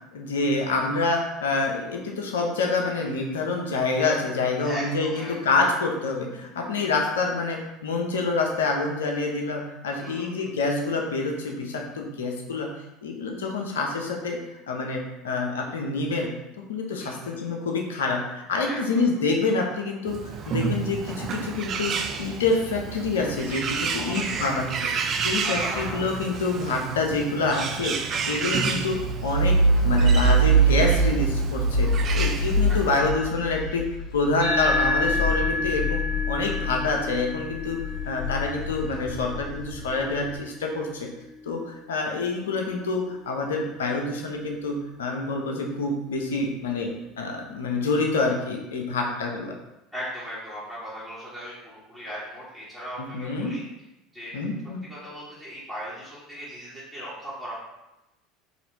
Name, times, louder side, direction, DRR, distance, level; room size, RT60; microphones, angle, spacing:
voice 1, 0.1-12.7 13.0-14.4 14.7-16.3 16.7-20.2 20.5-24.6 25.2-28.0 28.3-29.6 29.8-33.9 34.1-36.0 36.3-37.8 38.1-41.1 41.5-49.5 53.1-53.5 54.3-54.8, left 3 dB, 85° left, 1 dB, 0.5 m, -27 dB
voice 2, 4.6-5.8 10.0-10.5 17.0-17.3 18.6-19.1 23.9-24.5 25.4-26.0 28.3-28.6 32.0-33.3 49.9-53.6 54.1-54.3 54.9-57.5, equal, 10° left, -11 dB, 1.5 m, -38 dB
Bird, 20.1-33.0, right 6 dB, 45° right, 0.3 m, -31 dB
sound 1, 28.9-37.1 37.5-40.1, right 2 dB, 40° left, 1.2 m, -24 dB
sound 2, 34.4-43.1, left 1 dB, 65° right, 1.2 m, -31 dB
4.1 x 2.5 x 2.7 m, 0.94 s
hypercardioid pair, 75°, 0 cm